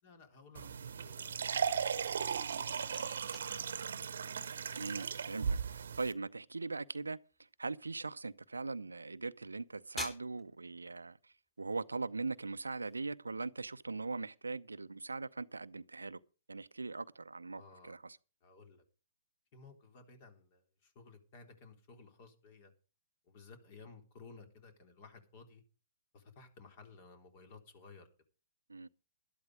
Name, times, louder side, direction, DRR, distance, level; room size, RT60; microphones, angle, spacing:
voice 1, 0.0-2.7 3.2-3.6 17.5-18.0 18.4-18.8 19.5-22.7 23.3-25.6 26.1-28.1, left 4 dB, 40° left, 3.6 m, -57 dB
sound 1, 0.5-6.1, right 6 dB, 65° right, 1.0 m, -37 dB
voice 2, 4.8-7.2 7.6-16.2 16.5-18.2 28.7-28.9, right 3 dB, 85° right, 0.6 m, -41 dB
sound 2, 10.0-13.0, left 2 dB, 15° left, 3.9 m, -54 dB
12.0 x 12.0 x 4.9 m
figure-of-eight pair, 120°, 0 cm